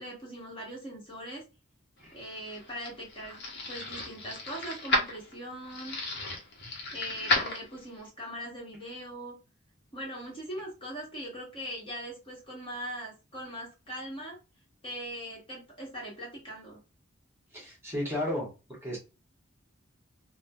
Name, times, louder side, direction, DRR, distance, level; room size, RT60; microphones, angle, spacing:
voice 1, 0.0-1.4 2.1-3.4 3.7-6.0 6.9-9.4 9.9-14.4 14.8-16.8, equal, 25° left, -2 dB, 1.2 m, -40 dB
sound 1, 2.1-8.1, left 1 dB, 55° left, 0.9 m, -33 dB
voice 2, 17.5-18.5 18.8-19.0, left 1 dB, 10° right, -4 dB, 1.0 m, -33 dB
3.1 x 2.1 x 2.5 m, 0.29 s
head